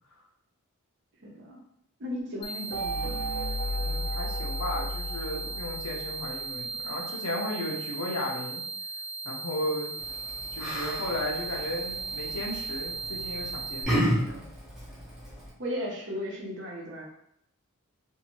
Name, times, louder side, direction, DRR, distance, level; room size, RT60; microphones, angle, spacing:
voice 1, 1.2-1.6 2.0-3.2 15.6-17.0, equal, 55° right, -2 dB, 0.8 m, -35 dB
sound 1, 2.4-13.8, right 4 dB, 40° left, 0.4 m, -37 dB
sound 2, 2.7-6.5, left 1 dB, 80° right, 0.3 m, -33 dB
voice 2, 3.8-8.6 9.2-9.9 10.5-14.4, left 1 dB, 90° left, -2 dB, 0.8 m, -35 dB
Yell, 10.0-15.5, equal, ahead, 0.8 m, -33 dB
2.7 x 2.6 x 3.0 m, 0.73 s
head